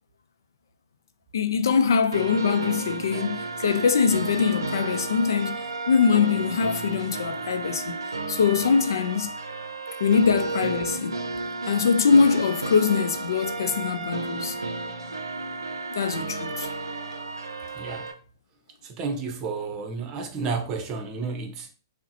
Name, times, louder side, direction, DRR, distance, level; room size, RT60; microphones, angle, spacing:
voice 1, 1.3-8.0 8.3-9.3 10.0-11.2 11.7-14.6 15.9-16.7, left 6 dB, 70° left, 0.5 m, -23 dB
sound 1, 2.1-18.1, right 3 dB, 90° right, 0.5 m, -32 dB
voice 2, 17.7-18.1 18.8-21.7, right 4 dB, 30° right, 0.8 m, -31 dB
5.6 x 2.1 x 2.8 m
figure-of-eight pair, 115°, 2 cm